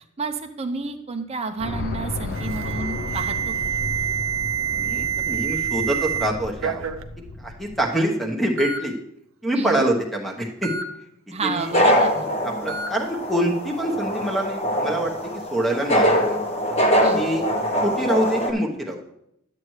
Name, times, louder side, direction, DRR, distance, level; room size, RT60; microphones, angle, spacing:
voice 1, 0.2-3.5 9.5-9.9 11.3-12.3 17.0-17.3, right 4 dB, 30° right, 5 dB, 0.6 m, -30 dB
sound 1, 1.6-7.8, left 2 dB, 50° left, 0.5 m, -33 dB
Alarm, 2.3-6.3 6.6-7.0 7.9-8.0 8.6-8.8 10.6-10.8 12.7-12.9, right 8 dB, 80° right, 0.5 m, -27 dB
voice 2, 4.7-6.9 7.4-9.0 9.4-10.7 11.3-11.7 12.4-16.4 17.1-17.4 17.8-19.0, right 1 dB, ahead, 1 dB, 1.0 m, -25 dB
sound 2, 11.6-18.5, equal, 30° left, 1.0 m, -23 dB
10.5 x 7.6 x 3.1 m, 0.79 s
head